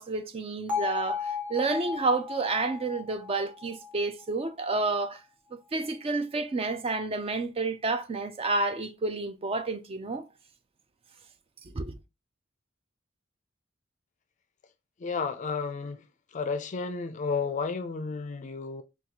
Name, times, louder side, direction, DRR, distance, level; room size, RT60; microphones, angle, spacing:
voice 1, 0.0-5.2 5.5-10.3 11.6-11.9, right 3 dB, 30° right, 0.4 m, -30 dB
Bell, 0.7-4.8, left 6 dB, 5° right, 0.9 m, -35 dB
voice 2, 15.0-16.0 16.3-18.8, left 4 dB, 35° left, 0.4 m, -32 dB
3.7 x 2.3 x 2.9 m
head